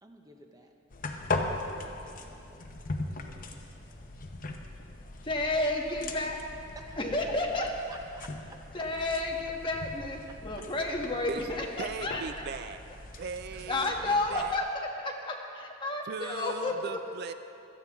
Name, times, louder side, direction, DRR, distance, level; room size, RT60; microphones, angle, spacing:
voice 1, 0.0-0.7 1.5-2.9 6.7-7.2 7.5-8.6, right 1 dB, 15° right, 3 dB, 0.6 m, -52 dB
sound 1, 0.9-14.6, left 2 dB, 40° left, 0.8 m, -39 dB
voice 2, 5.2-6.6 7.0-7.7 8.7-12.5 13.7-17.0, left 2 dB, 25° left, 0 dB, 1.3 m, -31 dB
voice 3, 11.8-12.8 13.1-14.6 16.1-17.3, right 5 dB, 50° right, 10 dB, 0.3 m, -38 dB
16.5 x 13.0 x 3.6 m, 2.7 s
head